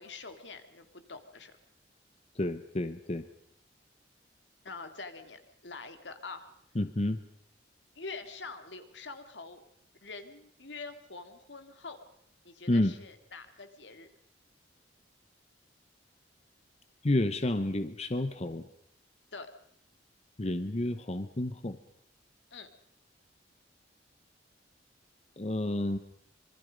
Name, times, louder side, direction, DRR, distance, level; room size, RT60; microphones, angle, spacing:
voice 1, 0.0-1.5 4.6-6.5 8.0-9.6 10.0-12.0 12.4-14.1 19.3-19.5 22.5-22.7, left 4 dB, 75° left, 8 dB, 2.4 m, -45 dB
voice 2, 2.4-3.3 6.7-7.2 12.7-12.9 17.0-18.6 20.4-21.8 25.4-26.0, left 1 dB, 35° left, 10 dB, 0.9 m, -30 dB
25.5 x 23.5 x 5.2 m, 0.69 s
head